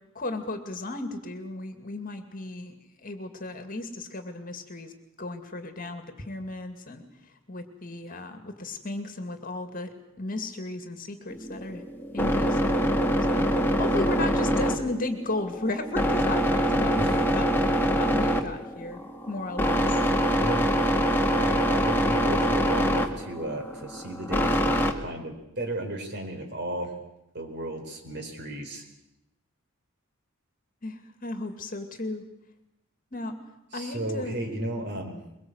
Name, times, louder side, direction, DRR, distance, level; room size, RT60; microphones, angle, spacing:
voice 1, 0.1-4.9 5.2-7.0 7.5-9.9 10.2-11.8 12.1-12.8 13.3-13.5 13.8-19.0 19.3-20.0 30.8-32.2 33.1-33.4 33.7-34.3, left 2 dB, 40° left, 7 dB, 2.4 m, -35 dB
sound 1, 11.3-24.9, equal, 10° left, 1.8 m, -25 dB
voice 2, 20.4-20.7 21.1-26.9 27.3-28.8 33.7-35.2, right 1 dB, 50° right, 4 dB, 4.4 m, -34 dB
23.0 x 22.5 x 8.1 m, 0.88 s
head